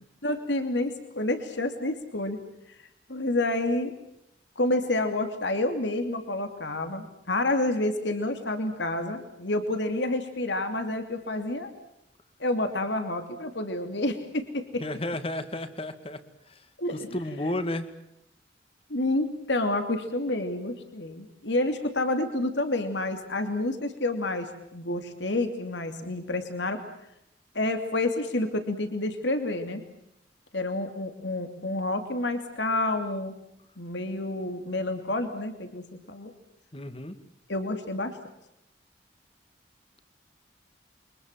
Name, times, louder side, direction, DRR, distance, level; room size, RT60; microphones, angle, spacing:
voice 1, 0.2-2.4 3.1-3.9 4.6-11.7 12.4-14.8 16.8-17.1 18.9-26.8 27.5-29.8 30.5-33.4 33.8-36.3 37.5-38.2, left 2 dB, 75° left, 7 dB, 2.9 m, -29 dB
voice 2, 14.8-16.2 16.5-16.6 16.9-17.9 36.7-37.2, left 1 dB, 30° left, 10 dB, 2.1 m, -32 dB
29.0 x 24.5 x 7.6 m, 0.81 s
head